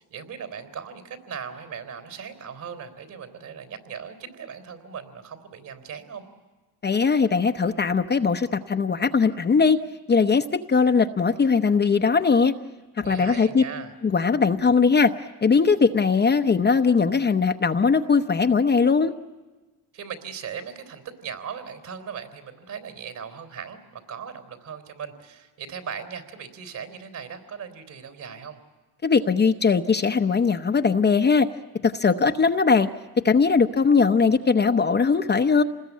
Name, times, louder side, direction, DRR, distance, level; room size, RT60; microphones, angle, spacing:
voice 1, 0.0-6.2 13.0-13.9 19.9-28.6, right 7 dB, 55° right, 8 dB, 3.9 m, -38 dB
voice 2, 6.8-9.8 10.1-12.5 13.0-13.6 14.0-15.1 15.4-19.1 29.0-31.5 31.8-32.9 33.2-35.6, left 5 dB, 25° left, 6 dB, 0.8 m, -20 dB
26.5 x 20.5 x 8.5 m, 1.2 s
cardioid pair, 95°, 39 cm